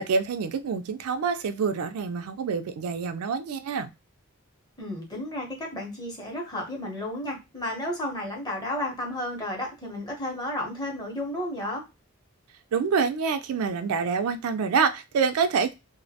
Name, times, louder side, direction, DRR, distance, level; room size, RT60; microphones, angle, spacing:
voice 1, 0.0-3.9 12.7-15.7, right 5 dB, 80° right, 8 dB, 0.3 m, -26 dB
voice 2, 4.8-11.8, left 1 dB, 20° left, 0 dB, 0.7 m, -32 dB
2.2 x 2.1 x 2.7 m, 0.24 s
head